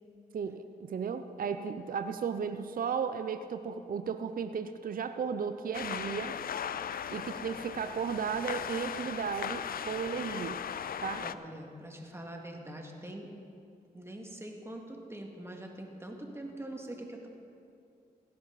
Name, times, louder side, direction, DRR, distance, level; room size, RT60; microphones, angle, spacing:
voice 1, 0.3-6.4 7.1-10.6 11.0-11.2, right 6 dB, 55° right, 9 dB, 0.6 m, -35 dB
sound 1, 5.7-11.3, left 8 dB, 60° left, 0.4 m, -38 dB
voice 2, 11.2-13.3 13.9-17.3, right 1 dB, 15° right, 1 dB, 2.1 m, -43 dB
17.0 x 10.5 x 4.1 m, 2.5 s
cardioid pair, 55°, 17 cm